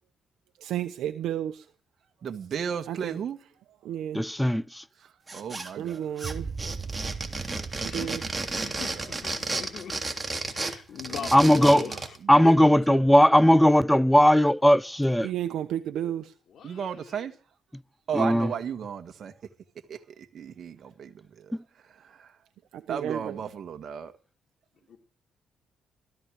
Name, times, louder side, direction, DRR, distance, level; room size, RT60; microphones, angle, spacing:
voice 1, 0.6-1.7 2.9-3.2 3.8-4.2 5.8-6.5 7.8-8.2 15.2-16.3 22.7-23.4, right 11 dB, 80° right, 1.0 m, -32 dB
voice 2, 2.2-3.4 5.0-6.1 8.5-9.2 11.1-13.0 16.6-17.4 18.1-19.3 19.9-22.4 22.9-24.1, right 7 dB, 55° right, 1.8 m, -36 dB
voice 3, 4.1-4.8 11.3-11.8 12.3-15.3 18.1-18.5 21.5-21.6, equal, 5° left, 0.6 m, -18 dB
sound 1, 5.3-5.9 6.2-12.2, right 2 dB, 20° right, 3.2 m, -33 dB
sound 2, 6.2-10.6, right 5 dB, 35° right, 0.9 m, -39 dB
voice 4, 8.6-10.0 10.3-12.2 12.4-12.8 16.5-17.3 24.9-25.0, left 7 dB, 65° left, 3.4 m, -39 dB
17.0 x 14.0 x 5.0 m
cardioid pair, 90°, 0 cm